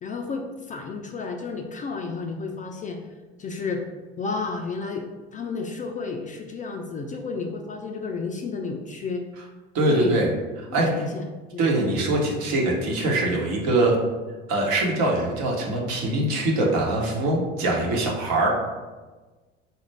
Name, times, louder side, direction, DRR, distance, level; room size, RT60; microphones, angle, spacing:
voice 1, 0.0-3.0 3.4-3.8 4.2-5.1 5.3-9.2 9.9-10.2 10.8-11.3 11.5-11.7, left 4 dB, 25° left, 3 dB, 0.4 m, -31 dB
voice 2, 9.7-10.3 10.7-11.1 11.6-14.0 14.5-18.5, right 2 dB, 55° right, -1 dB, 1.1 m, -23 dB
4.3 x 2.4 x 3.3 m, 1.2 s
hypercardioid pair, 70°, 33 cm